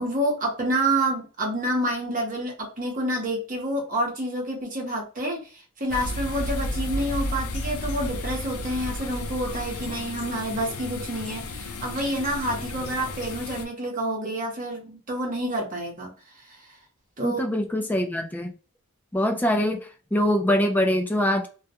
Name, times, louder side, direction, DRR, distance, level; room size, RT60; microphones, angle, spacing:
voice 1, 0.0-16.1 16.4-16.8 17.2-17.4, right 1 dB, 40° right, 0.9 m, -28 dB
sound 1, 5.9-13.7, left 1 dB, 80° left, 0.5 m, -32 dB
voice 2, 17.2-18.5 19.1-21.5, left 1 dB, 10° left, 0.3 m, -24 dB
2.3 x 2.2 x 2.8 m
head